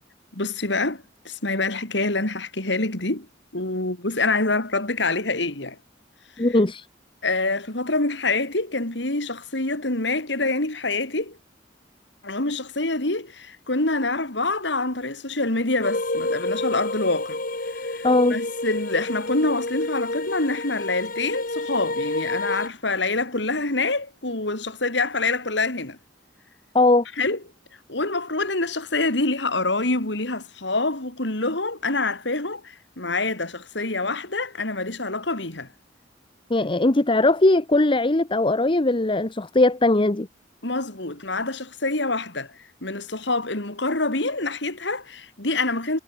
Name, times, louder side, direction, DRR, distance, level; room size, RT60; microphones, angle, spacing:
voice 1, 0.3-3.3 3.5-5.8 6.4-6.5 7.2-11.4 12.2-17.4 17.7-26.0 27.2-27.4 27.9-35.7 40.6-46.0, left 2 dB, 65° left, 3.6 m, -26 dB
voice 2, 6.4-6.8 18.0-18.4 26.7-27.0 36.5-40.3, left 2 dB, 25° left, 0.9 m, -19 dB
sound 1, 15.8-22.7, left 2 dB, 50° left, 4.6 m, -29 dB
head